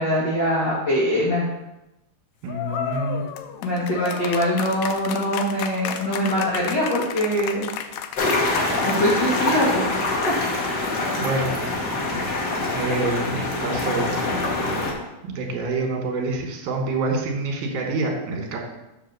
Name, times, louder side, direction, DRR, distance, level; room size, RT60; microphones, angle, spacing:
voice 1, 0.0-1.5 3.6-7.7 8.8-9.9 10.3-10.4, equal, 45° left, -7 dB, 1.8 m, -23 dB
voice 2, 2.4-3.2 10.8-11.5 12.1-12.2 12.7-14.1 15.2-18.6, right 3 dB, 75° right, 1 dB, 2.8 m, -27 dB
sound 1, 2.5-9.9, left 9 dB, 90° left, 1.6 m, -33 dB
sound 2, 8.2-14.9, left 2 dB, 75° left, 0.9 m, -25 dB
5.9 x 4.9 x 6.5 m, 0.95 s
omnidirectional pair, 3.7 m